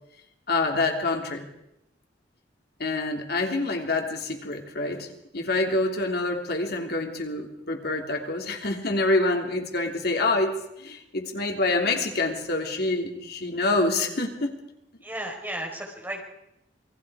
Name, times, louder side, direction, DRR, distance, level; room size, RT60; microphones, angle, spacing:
voice 1, 0.5-1.5 2.8-5.1 5.3-14.5, left 2 dB, 60° left, 3 dB, 3.1 m, -26 dB
voice 2, 15.0-16.2, right 1 dB, 10° right, 1 dB, 4.9 m, -34 dB
28.0 x 20.5 x 4.9 m, 0.82 s
head